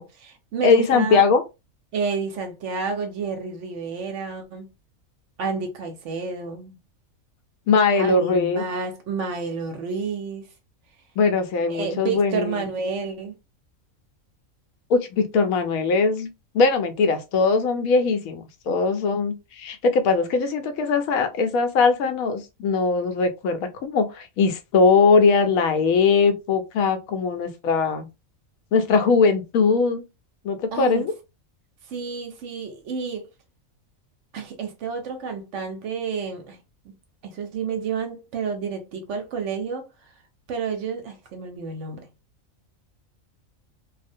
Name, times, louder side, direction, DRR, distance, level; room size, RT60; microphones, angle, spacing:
voice 1, 0.0-1.2 1.9-4.7 5.4-6.8 8.0-10.5 11.7-13.3 30.7-31.0 31.9-33.3 34.3-36.6 36.9-37.0 37.2-39.9 40.5-42.1, right 5 dB, 70° right, 0.8 m, -30 dB
voice 2, 0.6-1.4 7.7-8.6 11.2-12.7 14.9-16.3 16.5-28.1 28.7-30.0 30.4-31.1, left 4 dB, 80° left, 1.0 m, -20 dB
2.4 x 2.1 x 2.5 m
omnidirectional pair, 1.4 m